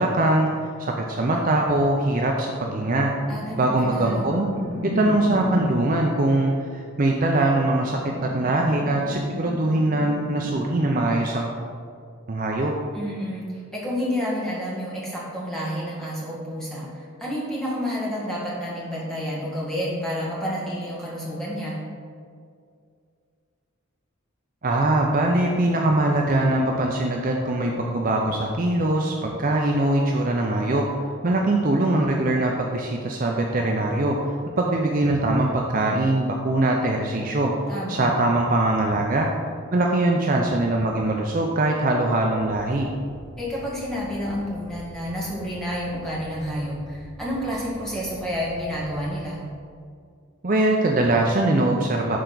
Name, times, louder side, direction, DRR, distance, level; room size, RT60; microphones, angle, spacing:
voice 1, 0.0-3.1 3.6-4.5 4.8-11.6 12.3-12.7 24.6-30.8 31.2-34.2 34.6-37.5 37.9-39.3 39.7-42.9 50.4-52.2, right 2 dB, 40° right, 0 dB, 0.5 m, -22 dB
sound 1, 2.7-5.9 7.7-10.5, equal, 75° right, 2.0 m, -33 dB
voice 2, 3.3-4.2 12.9-21.8 37.7-38.1 43.4-49.4, equal, 5° left, -7 dB, 1.8 m, -30 dB
sound 2, 42.3-49.2, equal, 80° left, 1.4 m, -44 dB
11.0 x 4.6 x 3.9 m, 2.2 s
head